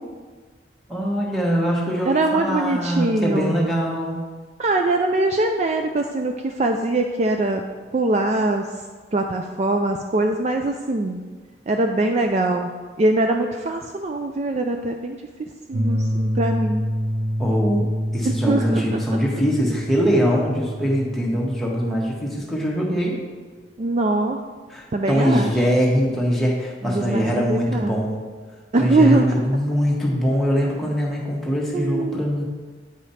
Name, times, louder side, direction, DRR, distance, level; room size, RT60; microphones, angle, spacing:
voice 1, 0.9-4.2 17.4-17.9 18.1-23.2 24.7-28.2 28.8-32.4, equal, ahead, -4 dB, 1.1 m, -22 dB
voice 2, 2.1-3.5 4.6-8.8 9.1-11.2 11.7-12.7 13.0-16.8 18.2-19.2 23.8-24.4 24.9-25.5 26.8-28.0 28.7-29.3 31.7-32.3, right 2 dB, 35° right, 4 dB, 0.3 m, -22 dB
sound 1, 15.7-22.4, equal, 85° right, 1.1 m, -27 dB
8.8 x 5.0 x 4.2 m, 1.4 s
head